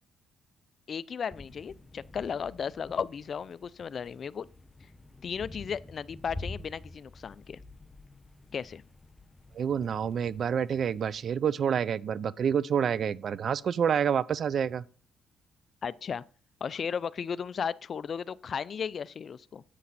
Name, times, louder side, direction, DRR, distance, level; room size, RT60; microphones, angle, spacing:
voice 1, 0.9-4.5 5.2-7.6 8.5-8.8 15.8-16.2 16.6-19.6, left 6 dB, 50° left, 0.4 m, -35 dB
sound 1, 1.3-11.2, left 2 dB, 20° left, 0.9 m, -48 dB
voice 2, 9.5-14.8, right 8 dB, 55° right, 0.5 m, -28 dB
10.0 x 8.5 x 4.1 m
cardioid pair, 90°, 0 cm